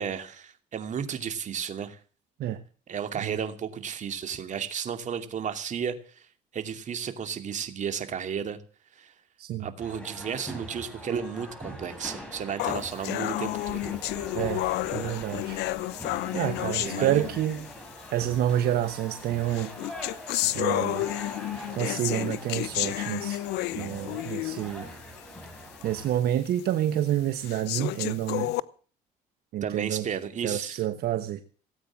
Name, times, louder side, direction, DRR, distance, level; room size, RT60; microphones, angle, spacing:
voice 1, 0.0-2.0 2.9-6.3 6.5-8.6 8.9-9.1 9.6-13.9 16.8-17.3 24.6-24.9 29.6-30.8, right 7 dB, 45° right, 2.6 m, -33 dB
sound 1, 9.8-26.2, equal, 5° left, 5.9 m, -42 dB
sound 2, 12.6-17.7 18.6-18.7 19.5-24.8 25.2-25.3 25.8-25.9 26.6-26.7 27.4-28.6, left 17 dB, 90° left, 0.8 m, -31 dB
voice 2, 14.3-15.6 16.3-17.7 18.1-19.7 20.5-21.1 21.7-23.4 23.8-24.9 25.8-28.5 29.5-30.0 30.4-31.4, right 12 dB, 70° right, 1.2 m, -28 dB
18.0 x 8.8 x 7.4 m
cardioid pair, 110°, 17 cm